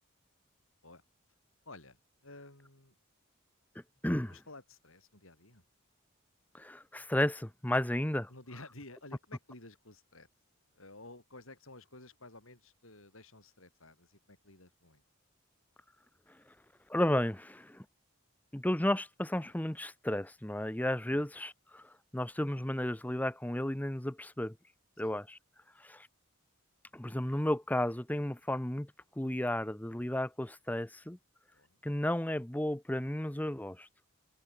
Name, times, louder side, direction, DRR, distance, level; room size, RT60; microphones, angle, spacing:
voice 1, 1.7-3.0 4.3-5.6 8.3-10.3 10.7-15.0 19.4-19.5 25.0-25.2 28.5-28.6 31.5-31.8, left 2 dB, 75° left, 7.0 m, -53 dB
voice 2, 4.0-4.3 6.5-8.3 16.9-17.8 18.5-24.5 25.0-25.4 25.8-26.1 26.9-28.9 29.2-31.2 31.8-33.9, left 1 dB, 5° left, 0.6 m, -33 dB
open air
head